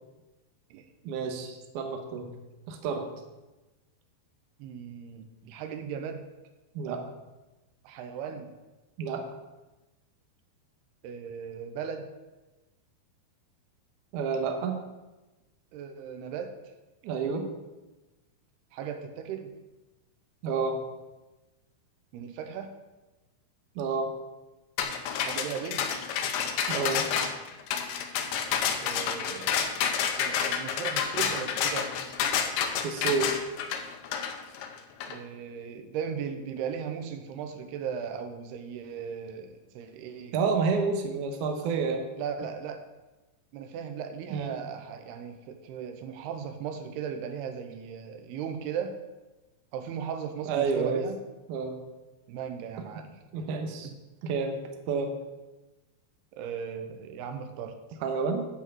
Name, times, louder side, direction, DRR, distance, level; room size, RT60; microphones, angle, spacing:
voice 1, 1.0-2.3 2.7-3.1 6.8-7.0 9.0-9.3 14.1-14.8 17.0-17.5 20.4-20.8 23.8-24.1 26.7-27.1 32.8-33.3 40.3-42.1 44.3-44.5 50.5-51.0 51.5-51.8 53.3-53.9 54.2-54.6 54.9-55.1 58.0-58.5, right 5 dB, 70° right, 4 dB, 2.1 m, -29 dB
voice 2, 4.6-6.3 7.8-8.6 11.0-12.1 15.7-16.6 18.7-19.5 22.1-22.7 25.2-26.1 28.8-31.9 35.1-40.4 42.2-42.8 43.5-49.0 49.7-51.2 52.3-53.2 53.8-54.0 56.4-58.0, right 7 dB, 85° right, 7 dB, 2.8 m, -37 dB
sound 1, 24.8-35.2, left 7 dB, 75° left, 2.3 m, -29 dB
10.0 x 4.6 x 7.8 m, 1.1 s
omnidirectional pair, 4.6 m